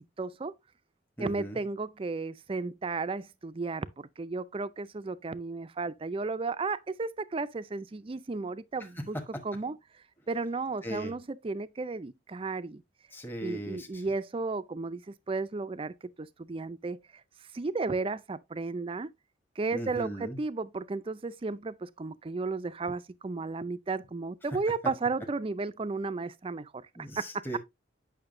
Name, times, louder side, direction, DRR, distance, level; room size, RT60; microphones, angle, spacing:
voice 1, 0.2-0.5 1.2-9.2 9.4-9.8 10.3-12.8 13.4-15.0 15.3-17.0 17.5-19.1 19.6-26.9 27.2-27.3, right 3 dB, 30° right, 0.4 m, -34 dB
voice 2, 1.2-1.6 10.8-11.1 13.1-14.1 19.7-20.4 27.0-27.6, right 1 dB, 10° left, 1.0 m, -38 dB
8.9 x 5.7 x 2.5 m
head